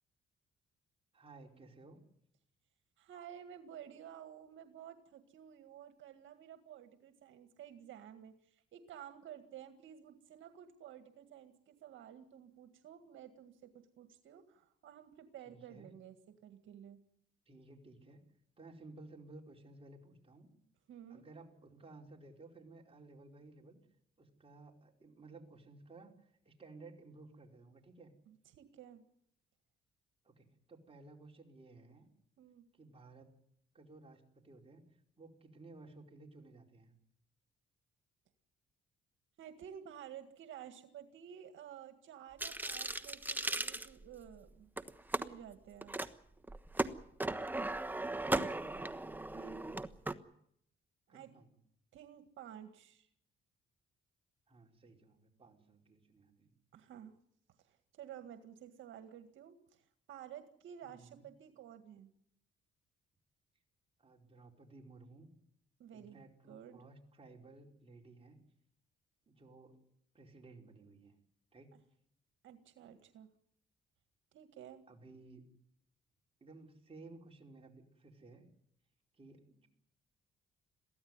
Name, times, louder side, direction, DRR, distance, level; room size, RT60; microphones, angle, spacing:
voice 1, 1.1-2.0 15.5-15.9 17.5-18.2 18.6-20.5 21.1-23.8 24.2-28.1 30.2-32.1 32.7-33.3 33.7-36.9 48.2-48.9 49.3-49.9 51.1-51.5 54.5-56.5 60.8-61.2 64.0-65.3 65.9-68.4 69.3-69.8 70.1-71.1 71.5-71.7 74.9-75.5 76.4-78.5 79.1-79.7, right 3 dB, 30° right, 1 dB, 4.8 m, -56 dB
voice 2, 3.0-17.0 20.9-21.3 28.3-29.0 32.4-32.7 39.4-44.7 45.1-46.0 49.3-49.6 51.1-51.3 51.9-53.1 56.7-57.1 57.6-62.1 65.8-66.9 72.4-73.3 74.3-74.8, right 9 dB, 75° right, 8 dB, 1.9 m, -53 dB
sound 1, 42.4-44.4 44.8-45.3 45.8-46.1 46.4-50.1, right 2 dB, 10° right, 1.2 m, -37 dB
22.5 x 16.0 x 9.6 m, 0.71 s
cardioid pair, 90°, 20 cm